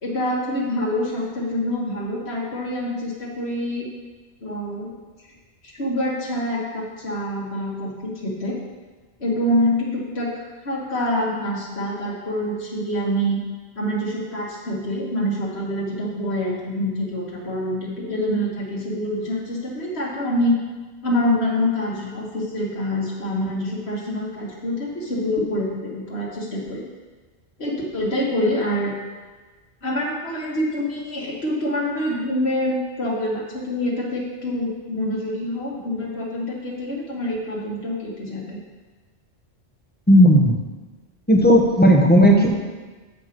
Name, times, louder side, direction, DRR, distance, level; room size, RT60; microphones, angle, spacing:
voice 1, 0.0-3.9 4.4-4.9 5.6-8.6 9.2-13.4 13.8-20.6 21.0-26.8 27.6-28.9 29.8-38.6, left 1 dB, 75° left, -4 dB, 2.0 m, -26 dB
voice 2, 40.1-40.6 41.3-42.5, equal, 10° left, 0 dB, 0.9 m, -14 dB
7.3 x 5.3 x 6.0 m, 1.3 s
omnidirectional pair, 1.1 m